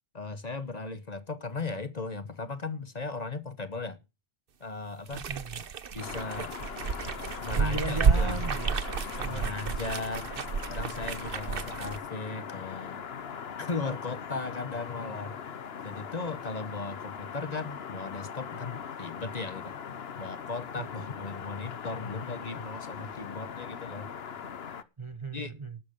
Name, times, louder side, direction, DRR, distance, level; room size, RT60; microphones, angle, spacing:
voice 1, 0.1-4.0 4.6-5.3 5.9-6.6 7.4-8.5 9.1-10.3 10.7-13.0 13.6-15.4 15.8-19.8 20.2-24.1 25.3-25.5, left 3 dB, 40° left, 1.1 m, -37 dB
voice 2, 5.1-5.6 7.5-8.8 9.2-9.5 20.8-20.9 25.0-25.8, right 3 dB, 30° right, 0.8 m, -36 dB
sound 1, 5.1-12.0, right 5 dB, 55° right, 1.1 m, -30 dB
sound 2, 6.0-24.8, left 7 dB, 65° left, 1.2 m, -40 dB
12.5 x 12.0 x 5.3 m
omnidirectional pair, 1.1 m